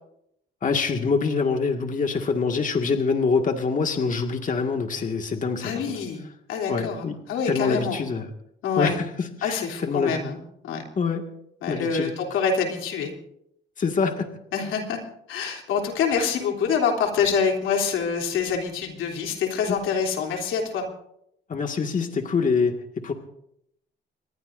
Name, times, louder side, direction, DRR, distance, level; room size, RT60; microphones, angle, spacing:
voice 1, 0.6-5.7 6.7-7.2 7.5-8.3 8.8-10.2 11.0-11.3 11.7-12.1 13.8-14.3 21.5-23.1, left 5 dB, 40° left, 3 dB, 1.9 m, -25 dB
voice 2, 5.6-6.2 6.5-8.0 8.6-8.9 9.4-10.4 10.6-10.8 11.6-13.1 14.5-15.0 15.3-20.8, left 6 dB, 90° left, 2 dB, 3.2 m, -26 dB
25.5 x 21.0 x 2.6 m, 0.75 s
cardioid pair, 90°, 20 cm